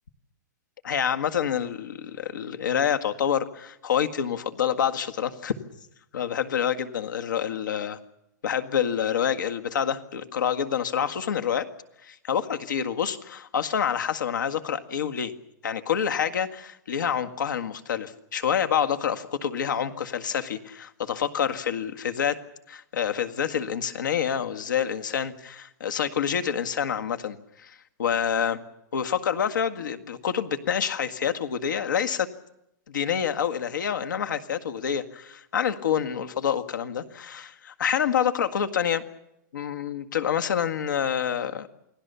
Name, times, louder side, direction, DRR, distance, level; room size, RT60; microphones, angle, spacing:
voice 1, 0.8-5.5 6.1-8.0 8.4-11.7 12.0-15.3 15.6-22.4 22.7-28.6 28.9-32.3 32.9-39.0 39.5-41.7, left 8 dB, 90° left, 8 dB, 1.9 m, -27 dB
29.0 x 19.0 x 7.0 m, 0.84 s
hypercardioid pair, 180°, 10 cm